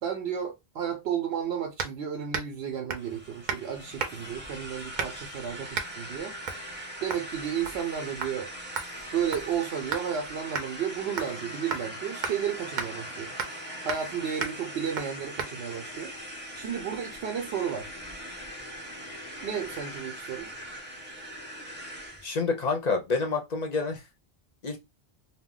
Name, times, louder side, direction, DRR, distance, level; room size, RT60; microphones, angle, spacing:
voice 1, 0.0-6.3 7.0-8.5 9.1-13.3 13.8-16.1 16.5-17.9 19.4-20.5, right 8 dB, 90° right, 0.9 m, -32 dB
sound 1, 1.8-2.0 2.3-2.6 2.9-3.1 3.5-3.7 4.0-4.3 5.0-5.3 5.7-5.9 6.5-6.6 7.1-7.3 7.7-7.9 8.2-8.3 8.8-10.1 10.5-10.7 11.2-11.4 11.7-11.9 12.2-12.4 12.8-12.9 13.4-13.6 13.9-14.1 14.4-14.6 15.0-15.1 15.4-15.5, right 5 dB, 55° right, 0.6 m, -34 dB
sound 2, 3.0-22.3, equal, 10° right, 0.8 m, -41 dB
voice 2, 22.2-24.0 24.6-24.8, left 4 dB, 50° left, 0.6 m, -28 dB
2.3 x 2.1 x 3.6 m
omnidirectional pair, 1.1 m